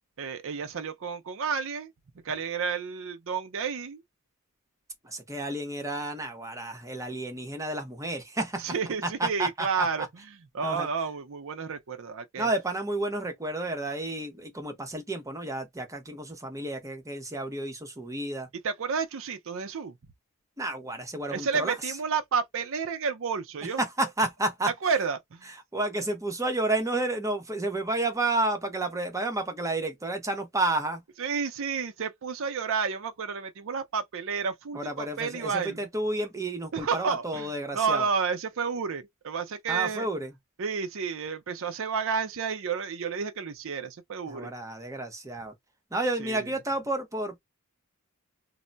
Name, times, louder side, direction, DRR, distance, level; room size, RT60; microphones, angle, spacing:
voice 1, 0.2-1.9 2.2-4.0 8.6-12.5 18.6-20.0 21.3-23.8 24.8-25.5 31.2-35.9 36.7-40.1 40.6-44.5 46.2-46.4, right 5 dB, 60° right, 0.5 m, -31 dB
voice 2, 5.0-8.7 9.0-10.1 10.6-10.9 12.4-18.5 20.6-21.7 23.8-24.7 25.7-31.0 34.7-38.1 39.7-40.3 44.3-45.5 45.9-47.4, right 2 dB, 15° right, 0.7 m, -31 dB
2.2 x 2.1 x 3.8 m
head